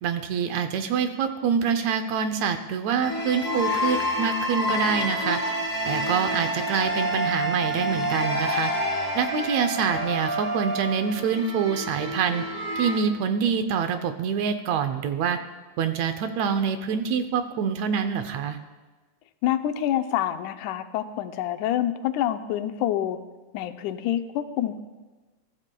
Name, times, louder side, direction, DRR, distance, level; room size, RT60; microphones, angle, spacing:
voice 1, 0.0-5.4 5.9-8.7 9.1-12.5 12.8-15.4 15.8-18.6, right 7 dB, 75° right, 8 dB, 1.9 m, -26 dB
sound 1, 3.0-13.0, equal, 35° left, 0.7 m, -28 dB
voice 2, 19.4-23.2 23.5-24.8, left 11 dB, 90° left, 8 dB, 2.1 m, -27 dB
22.0 x 14.0 x 2.3 m, 1.2 s
omnidirectional pair, 3.4 m